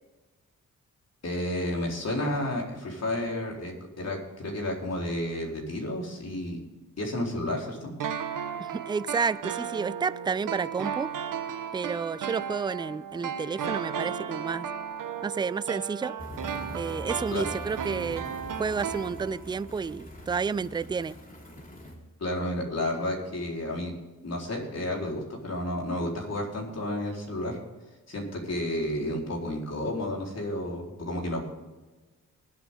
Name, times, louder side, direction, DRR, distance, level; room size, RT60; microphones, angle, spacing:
voice 1, 1.2-6.6 7.0-7.9 17.3-17.4 22.2-23.9 24.2-27.6 28.1-31.4, left 1 dB, 50° left, -1 dB, 4.3 m, -31 dB
sound 1, 8.0-19.6 19.9-20.0, right 7 dB, 80° right, 1.3 m, -35 dB
voice 2, 8.6-11.1 11.7-14.7 15.2-16.1 16.7-18.3 18.6-21.2, right 5 dB, 15° right, 18 dB, 0.3 m, -30 dB
sound 2, 16.2-21.9, equal, 25° left, 3.3 m, -43 dB
20.0 x 8.4 x 3.8 m, 1.2 s
cardioid pair, 85°, 33 cm